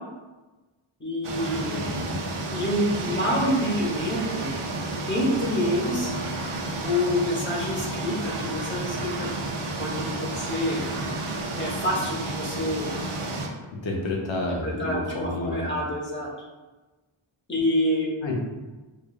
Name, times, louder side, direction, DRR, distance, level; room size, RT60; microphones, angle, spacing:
voice 1, 1.0-1.9 2.5-4.5 5.1-6.1 6.8-9.3 9.8-10.8 11.6-12.9 14.6-16.3 17.5-18.1, left 1 dB, 25° left, -4 dB, 0.9 m, -27 dB
sound 1, 1.2-13.5, right 2 dB, 80° right, 0.6 m, -31 dB
voice 2, 1.8-2.2 13.8-15.7 18.2-18.4, left 2 dB, 65° left, -2 dB, 0.8 m, -30 dB
4.8 x 2.4 x 2.4 m, 1.2 s
wide cardioid pair, 100°, 50 cm